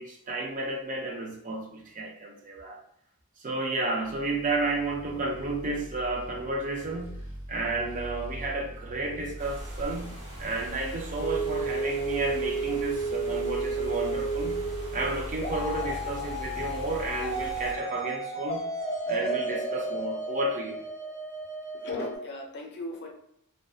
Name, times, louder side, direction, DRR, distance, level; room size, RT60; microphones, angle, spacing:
voice 1, 0.0-2.8 3.4-7.2 7.5-10.1 10.4-14.6 14.9-18.7 19.1-20.8, right 2 dB, 35° right, 1 dB, 0.4 m, -32 dB
sound 1, 4.0-17.8, equal, 65° right, 0.7 m, -41 dB
sound 2, 9.4-17.8, right 1 dB, 15° right, 1.2 m, -46 dB
sound 3, 11.2-22.2, right 2 dB, 25° left, 1.1 m, -32 dB
voice 2, 21.8-23.1, left 2 dB, 50° left, 0 dB, 0.5 m, -37 dB
2.5 x 2.2 x 2.3 m, 0.74 s
head